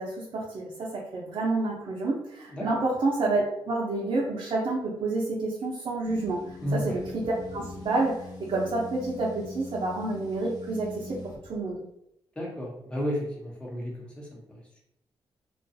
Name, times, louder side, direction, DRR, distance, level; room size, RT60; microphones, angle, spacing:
voice 1, 0.0-6.4 6.7-11.8, right 2 dB, 60° right, -4 dB, 0.6 m, -29 dB
voice 2, 2.5-2.8 6.6-7.0 12.4-14.6, equal, 10° left, -3 dB, 0.9 m, -33 dB
sound 1, 6.0-11.4, left 2 dB, 45° left, 0.8 m, -42 dB
2.4 x 2.3 x 2.7 m, 0.77 s
cardioid pair, 90°, 10 cm